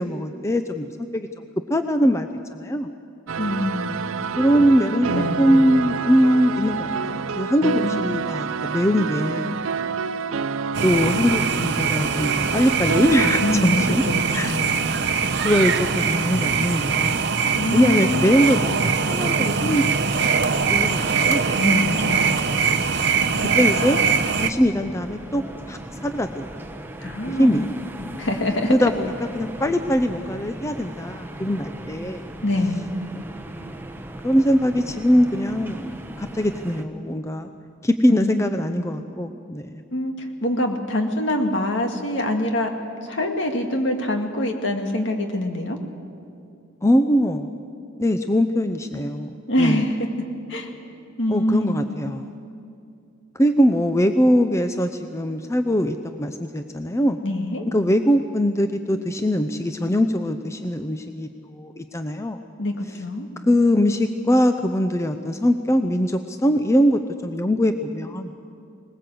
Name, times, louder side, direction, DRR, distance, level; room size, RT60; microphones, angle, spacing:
voice 1, 0.0-1.4 1.7-2.9 4.4-5.1 5.4-9.6 10.8-14.0 14.3-14.5 15.0-17.2 17.7-19.9 20.7-21.4 23.4-24.0 24.4-26.6 27.3-27.7 28.7-32.2 33.1-33.2 34.0-37.5 37.8-39.8 46.8-47.5 48.0-49.3 49.6-49.8 51.3-52.3 53.3-57.2 57.7-62.4 63.4-68.3, equal, 15° left, 8 dB, 0.5 m, -22 dB
sound 1, 3.3-13.5, right 5 dB, 85° right, 0.5 m, -28 dB
voice 2, 3.4-4.1 4.5-4.7 4.9-5.5 7.6-8.0 13.4-14.8 17.6-18.2 21.6-22.3 27.0-27.7 28.2-28.7 32.4-32.8 38.1-38.4 39.9-42.7 43.0-45.8 49.5-50.7 51.2-51.8 57.2-57.7 62.6-63.3, left 1 dB, 65° left, 4 dB, 2.0 m, -25 dB
sound 2, 10.7-24.5, right 5 dB, 55° right, 0.9 m, -22 dB
sound 3, 19.8-36.8, right 1 dB, 10° right, 0.9 m, -38 dB
21.0 x 19.5 x 7.8 m, 2.5 s
head